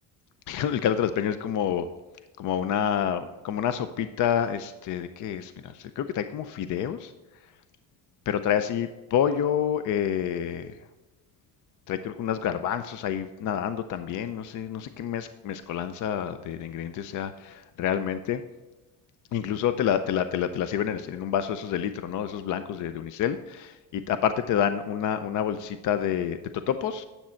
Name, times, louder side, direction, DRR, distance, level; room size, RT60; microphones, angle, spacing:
voice 1, 0.5-1.9 2.4-7.1 8.3-10.8 11.9-18.4 19.3-27.0, left 9 dB, 50° left, 11 dB, 0.5 m, -28 dB
10.0 x 7.4 x 4.4 m, 1.1 s
cardioid pair, 160°, 39 cm